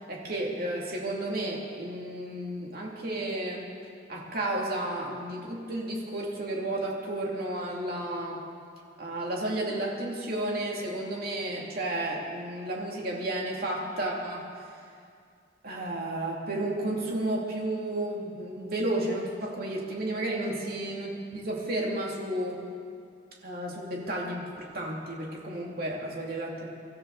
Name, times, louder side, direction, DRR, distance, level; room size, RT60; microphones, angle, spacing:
voice 1, 0.1-3.7 4.1-8.4 9.0-14.5 15.6-22.6 23.4-26.7, right 1 dB, 55° right, -2 dB, 2.9 m, -32 dB
25.0 x 13.5 x 4.2 m, 2.3 s
head